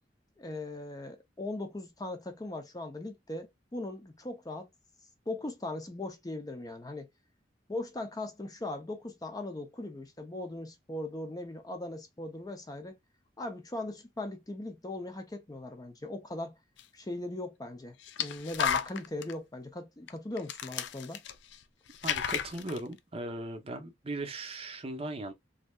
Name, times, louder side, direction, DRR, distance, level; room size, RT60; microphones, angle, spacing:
voice 1, 0.4-4.7 5.3-7.1 7.7-13.0 13.4-16.6 16.9-21.2, left 2 dB, 20° left, 0.6 m, -39 dB
sound 1, 16.8-16.9 18.0-19.3 20.1-20.2 20.4-21.6 21.9-22.8, left 8 dB, 70° left, 0.4 m, -33 dB
voice 2, 22.0-25.3, right 2 dB, 30° right, 0.6 m, -38 dB
3.2 x 2.6 x 2.3 m
head